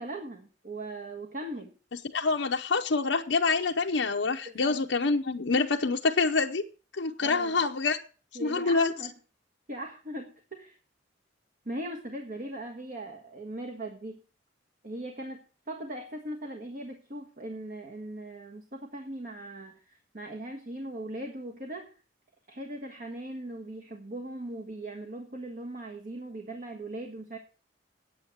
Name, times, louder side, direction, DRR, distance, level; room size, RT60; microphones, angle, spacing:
voice 1, 0.0-1.7 4.4-4.8 7.2-7.6 8.3-9.1 9.7-10.8 11.6-14.2 14.8-21.9 22.5-27.4, right 1 dB, 50° right, 1.4 m, -39 dB
voice 2, 2.1-6.6 6.9-8.0 8.4-8.9, left 4 dB, 85° left, 0.8 m, -26 dB
8.9 x 8.8 x 7.9 m
head